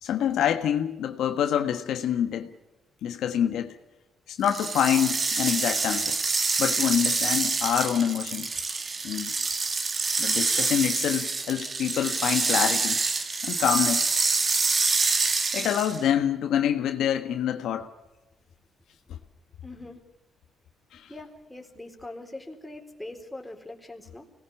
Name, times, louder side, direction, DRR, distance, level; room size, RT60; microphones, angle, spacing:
voice 1, 0.0-2.5 3.0-3.8 4.3-6.2 6.6-8.5 9.0-9.3 10.2-13.0 13.4-14.1 15.5-17.9 19.1-19.2 20.9-21.1, left 9 dB, 80° left, 1.5 m, -26 dB
sound 1, 4.4-16.1, right 4 dB, 35° right, 2.1 m, -26 dB
voice 2, 19.6-20.0 21.1-24.3, left 2 dB, 10° left, 4.1 m, -42 dB
25.0 x 19.0 x 7.2 m
cardioid pair, 90°, 0 cm